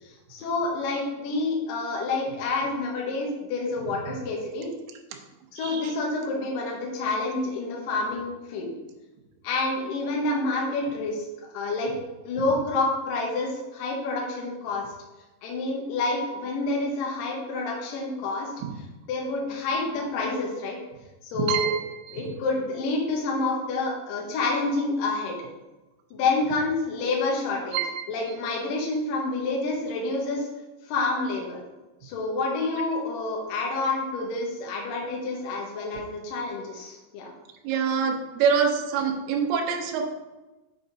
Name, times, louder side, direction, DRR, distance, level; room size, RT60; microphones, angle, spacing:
voice 1, 0.3-4.7 5.5-8.7 9.4-11.2 11.5-11.9 12.2-14.8 15.4-18.5 19.1-20.8 21.3-21.7 22.1-25.3 26.1-27.8 28.1-30.5 30.9-31.6 32.0-37.3, left 3 dB, 65° left, -1 dB, 2.3 m, -28 dB
voice 2, 5.6-5.9 21.3-22.3 27.7-28.0 37.6-40.1, right 6 dB, 80° right, 2 dB, 2.2 m, -26 dB
7.7 x 5.2 x 4.0 m, 1.1 s
omnidirectional pair, 5.7 m